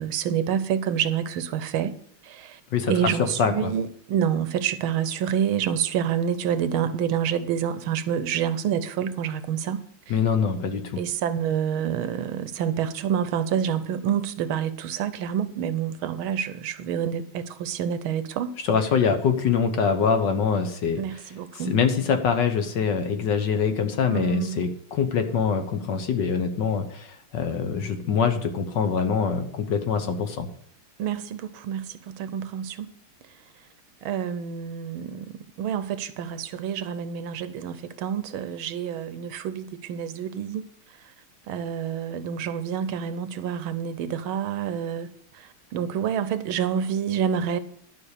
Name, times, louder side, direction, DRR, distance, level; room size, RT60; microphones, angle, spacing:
voice 1, 0.0-1.9 2.2-2.6 2.9-9.8 11.0-18.5 21.0-21.8 24.1-24.6 31.0-32.9 34.0-40.7 41.5-45.1 45.7-47.6, right 8 dB, 75° right, 1.5 m, -28 dB
voice 2, 2.7-3.7 10.1-11.0 18.6-21.0 21.5-30.5, left 6 dB, 60° left, 1.6 m, -24 dB
12.0 x 5.7 x 6.6 m
omnidirectional pair, 2.4 m